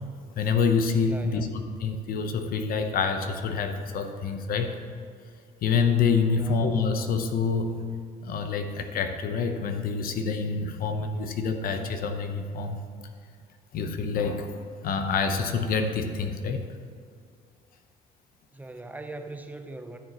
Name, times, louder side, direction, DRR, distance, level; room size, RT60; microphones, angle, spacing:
voice 1, 0.4-4.8 5.6-7.8 8.2-12.8 13.7-16.7, left 5 dB, 60° left, 6 dB, 0.7 m, -27 dB
voice 2, 1.0-1.6 6.3-6.7 18.5-20.0, right 2 dB, 10° right, 7 dB, 0.6 m, -40 dB
13.0 x 6.9 x 2.9 m, 2.2 s
cardioid pair, 110°, 17 cm